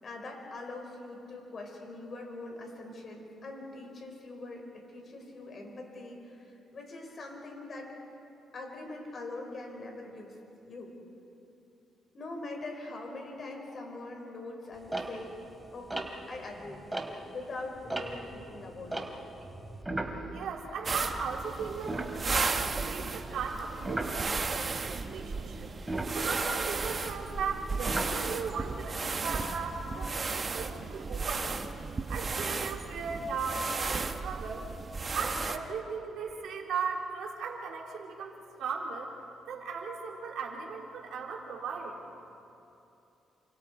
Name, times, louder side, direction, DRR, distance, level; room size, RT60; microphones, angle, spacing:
voice 1, 0.0-7.9 8.5-10.4 10.6-10.9 12.1-15.3 15.7-16.8 17.3-19.1, left 2 dB, 45° left, 1 dB, 5.8 m, -42 dB
sound 1, 14.9-17.4 17.8-21.2 21.5-21.6 21.9-22.7 23.8-24.2 25.8-28.6 29.3-29.9, right 2 dB, 10° right, 2.9 m, -37 dB
voice 2, 20.3-25.7 26.1-31.6 32.1-34.7 35.1-39.1 39.5-42.0, right 5 dB, 75° right, -1 dB, 3.9 m, -37 dB
sound 2, 20.8-35.6, right 4 dB, 35° right, 1.3 m, -34 dB
29.0 x 26.5 x 4.9 m, 2.8 s
cardioid pair, 90°, 0 cm